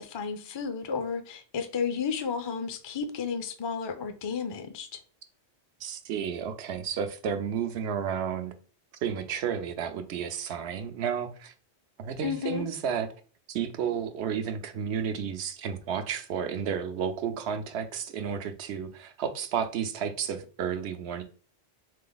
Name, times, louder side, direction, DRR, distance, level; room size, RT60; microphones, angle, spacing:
voice 1, 0.0-5.0 12.2-12.7, left 6 dB, 45° left, 0.3 m, -32 dB
voice 2, 5.8-8.5 9.0-11.5 12.0-13.1 13.5-21.2, right 7 dB, 80° right, 0.9 m, -32 dB
3.7 x 3.3 x 3.9 m
omnidirectional pair, 1.1 m